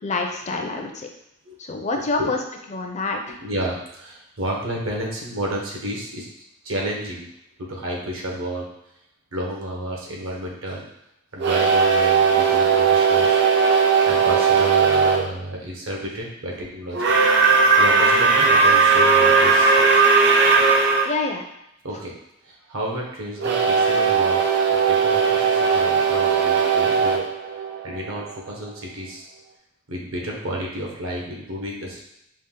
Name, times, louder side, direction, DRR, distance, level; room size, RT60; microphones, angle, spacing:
voice 1, 0.0-1.1 1.7-2.4 2.7-3.4 21.1-21.4, left 3 dB, 35° left, 3 dB, 0.5 m, -26 dB
voice 2, 3.4-6.3 6.6-7.3 7.6-8.7 9.3-10.9 11.3-13.4 14.1-17.0 17.8-19.8 21.8-22.1 22.4-24.4 24.7-27.2 27.8-29.3 29.9-32.0, right 1 dB, 70° right, -1 dB, 1.1 m, -31 dB
sound 1, 11.4-15.3 16.9-21.1 23.4-28.3, right 5 dB, 55° right, 0.5 m, -18 dB
5.2 x 2.4 x 3.7 m, 0.81 s
head